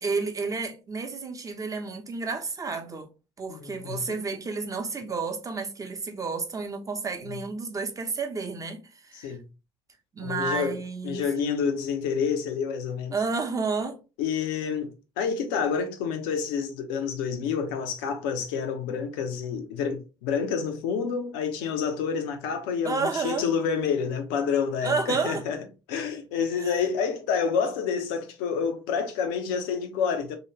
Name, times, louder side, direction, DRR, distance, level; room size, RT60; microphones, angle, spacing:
voice 1, 0.0-3.1 3.4-9.4 10.1-11.2 13.1-14.0 22.8-23.4 24.8-25.4 26.6-26.7, right 4 dB, 25° right, 0.8 m, -31 dB
voice 2, 3.5-4.0 7.3-7.4 9.1-9.5 10.2-10.8 11.0-13.2 14.2-25.6 25.9-30.4, left 6 dB, 70° left, 0.7 m, -28 dB
3.1 x 2.9 x 2.9 m
figure-of-eight pair, 55°, 12 cm